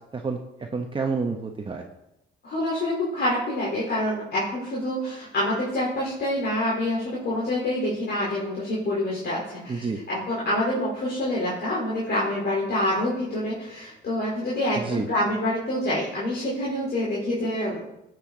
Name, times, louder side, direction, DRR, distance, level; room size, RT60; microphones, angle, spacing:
voice 1, 0.1-1.8 9.7-10.0 14.8-15.0, right 4 dB, 25° right, 2 dB, 1.1 m, -29 dB
voice 2, 2.4-17.8, left 1 dB, 55° left, -6 dB, 4.0 m, -27 dB
14.5 x 8.2 x 4.0 m, 0.86 s
cardioid pair, 90°, 20 cm